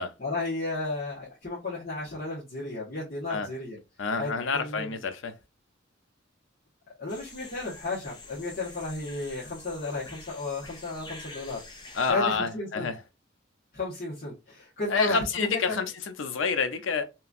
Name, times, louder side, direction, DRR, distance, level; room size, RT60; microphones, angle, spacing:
voice 1, 0.2-3.8 4.2-5.0 7.0-11.6 12.1-12.9 13.7-15.8, left 2 dB, 45° left, 1.2 m, -33 dB
voice 2, 4.0-5.3 11.9-13.0 14.9-17.0, left 5 dB, 80° left, 0.5 m, -28 dB
sound 1, 7.1-12.1, left 2 dB, 25° left, 0.6 m, -46 dB
3.0 x 2.5 x 2.4 m
head